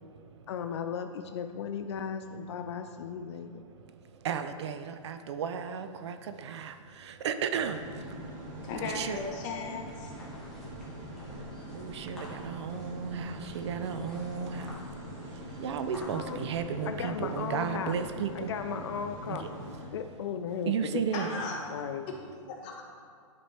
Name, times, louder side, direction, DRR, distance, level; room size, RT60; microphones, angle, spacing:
voice 1, 0.5-3.6 16.1-16.5 16.9-18.0 18.3-19.5 19.9-21.0 21.3-21.4 21.7-22.1, left 7 dB, 55° left, 7 dB, 0.4 m, -36 dB
voice 2, 4.2-7.8 8.8-9.2 11.7-14.9 15.3-18.6 19.3-19.5 20.7-21.3, right 7 dB, 55° right, 9 dB, 0.5 m, -34 dB
sound 1, 7.5-19.9, equal, 35° right, 1.5 m, -43 dB
voice 3, 8.6-10.1 21.1-21.7 22.1-22.2 22.5-22.8, left 3 dB, 30° left, 0 dB, 1.1 m, -36 dB
sound 2, 8.6-16.6, equal, 5° left, 1.2 m, -51 dB
10.5 x 4.2 x 3.4 m, 2.2 s
hypercardioid pair, 150°, 17 cm